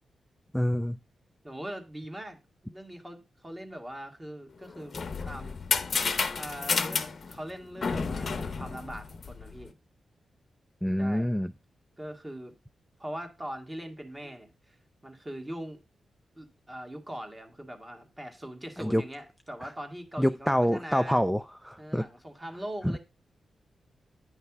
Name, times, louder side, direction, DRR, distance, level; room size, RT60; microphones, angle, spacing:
voice 1, 0.5-1.0 10.8-11.5 18.8-19.0 19.6-19.7 20.2-22.0 22.8-22.9, equal, ahead, 0.4 m, -26 dB
voice 2, 1.4-5.0 5.2-5.5 6.3-7.0 7.3-9.7 11.0-11.3 12.0-12.5 13.0-14.8 15.0-15.8 16.3-21.2 21.8-23.0, right 1 dB, 20° right, 1.5 m, -41 dB
sound 1, 4.6-9.6, left 5 dB, 55° left, 0.8 m, -31 dB
9.6 x 3.2 x 5.8 m
cardioid pair, 85°, 0 cm